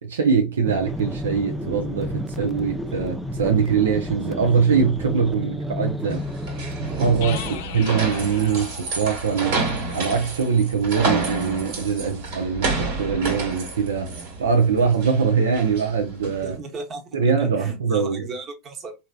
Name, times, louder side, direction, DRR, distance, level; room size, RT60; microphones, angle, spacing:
voice 1, 0.0-6.3 6.8-9.6 9.9-16.6 17.1-18.3, right 6 dB, 85° right, 0.6 m, -22 dB
sound 1, 0.7-7.6, equal, ahead, 0.5 m, -31 dB
sound 2, 6.1-16.5, right 3 dB, 65° right, 1.6 m, -29 dB
sound 3, 7.2-10.9, left 8 dB, 65° left, 0.5 m, -39 dB
voice 2, 16.4-19.0, right 3 dB, 35° right, 1.0 m, -36 dB
3.2 x 2.7 x 2.3 m
hypercardioid pair, 90°, 0 cm